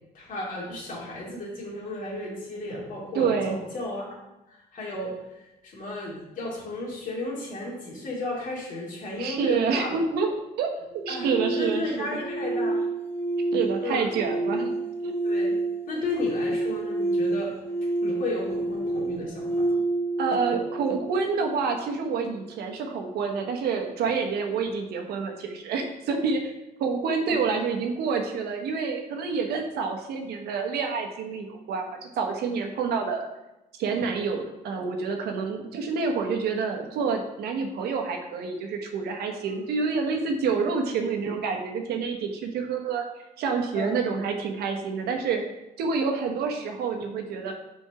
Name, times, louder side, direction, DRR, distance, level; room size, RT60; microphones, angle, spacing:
voice 1, 0.1-4.1 4.5-5.4 5.6-10.0 11.1-12.8 13.8-14.1 15.2-15.6 15.9-17.5 18.0-19.8 27.3-27.7 39.5-39.6 43.7-44.0, left 1 dB, 55° left, -3 dB, 2.2 m, -34 dB
voice 2, 3.1-3.6 9.2-10.3 10.6-10.7 10.9-12.2 13.5-14.7 15.0-15.1 20.2-26.5 26.8-33.3 33.8-43.0 43.4-45.4 45.8-47.5, right 5 dB, 80° right, 4 dB, 1.0 m, -28 dB
sound 1, 10.9-21.9, right 2 dB, 15° left, 1.0 m, -29 dB
4.7 x 4.3 x 5.7 m, 0.97 s
cardioid pair, 120°, 16 cm